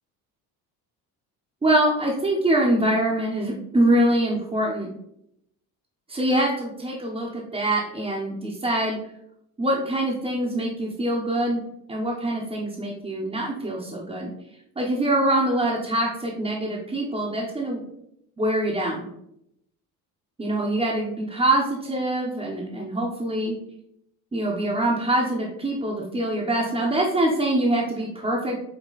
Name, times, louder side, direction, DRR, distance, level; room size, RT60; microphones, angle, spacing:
voice 1, 1.6-4.9 6.1-9.0 9.6-11.6 11.9-14.3 14.8-17.9 18.4-19.1 20.4-23.6 24.3-28.6, right 1 dB, 15° right, -6 dB, 1.0 m, -24 dB
8.3 x 3.1 x 4.0 m, 0.78 s
cardioid pair, 140°, 37 cm